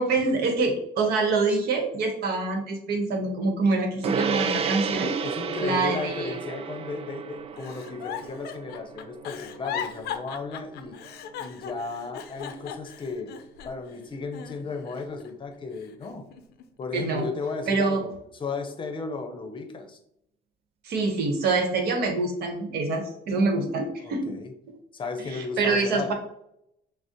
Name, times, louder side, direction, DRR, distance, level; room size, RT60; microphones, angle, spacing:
voice 1, 0.0-5.1 5.6-6.4 16.9-17.2 17.7-18.0 20.8-24.3 25.3-26.1, right 3 dB, 70° right, 4 dB, 1.0 m, -25 dB
Gong, 4.0-13.7, right 6 dB, 35° right, 0.4 m, -33 dB
voice 2, 5.2-11.0 11.4-13.3 13.6-16.3 16.8-18.1 18.4-20.0 23.5-23.6 24.0-24.5 24.9-26.1, left 4 dB, 30° left, 6 dB, 0.7 m, -34 dB
Giggle, 7.6-13.9 14.3-15.3 15.7-16.9 17.4-17.7, left 9 dB, 75° left, 0.5 m, -38 dB
6.1 x 2.0 x 2.9 m, 0.77 s
cardioid pair, 110°, 17 cm